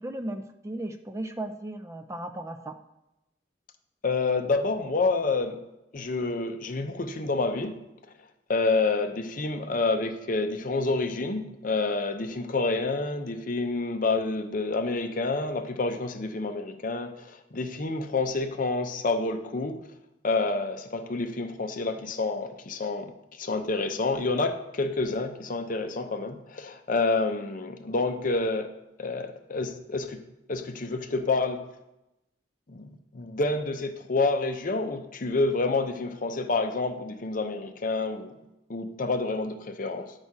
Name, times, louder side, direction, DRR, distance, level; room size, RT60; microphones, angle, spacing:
voice 1, 0.0-2.7, right 1 dB, 15° right, 7 dB, 0.4 m, -36 dB
voice 2, 4.0-5.6 5.9-7.8 8.5-19.8 20.2-23.1 23.4-28.7 29.0-30.2 30.5-31.6 32.7-38.3 38.7-40.1, left 3 dB, 50° left, 7 dB, 0.7 m, -28 dB
9.7 x 4.2 x 4.7 m, 0.91 s
head